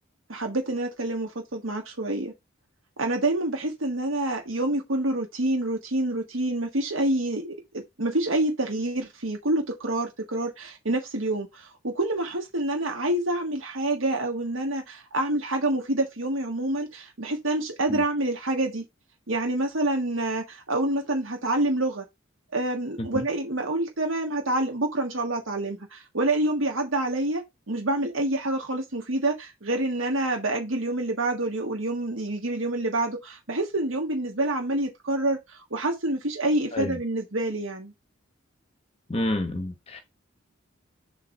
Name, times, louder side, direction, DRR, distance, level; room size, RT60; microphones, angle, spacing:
voice 1, 0.3-2.3 3.0-18.8 19.3-22.0 22.5-37.9, right 1 dB, 80° right, 1.5 m, -27 dB
voice 2, 39.1-40.0, left 1 dB, 30° left, 0.9 m, -29 dB
7.1 x 3.5 x 5.3 m
head